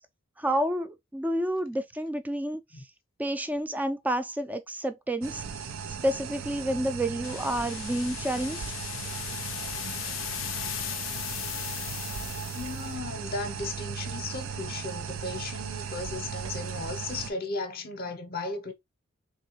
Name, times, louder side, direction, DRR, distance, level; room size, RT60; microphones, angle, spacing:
voice 1, 0.4-2.6 3.2-5.4 6.0-8.6, right 1 dB, 10° right, 0.4 m, -29 dB
sound 1, 5.2-17.3, right 6 dB, 80° right, 0.5 m, -37 dB
sound 2, 7.2-12.9, left 15 dB, 65° left, 0.3 m, -37 dB
voice 2, 12.5-18.7, left 3 dB, 50° left, 0.7 m, -35 dB
3.5 x 3.2 x 3.0 m
head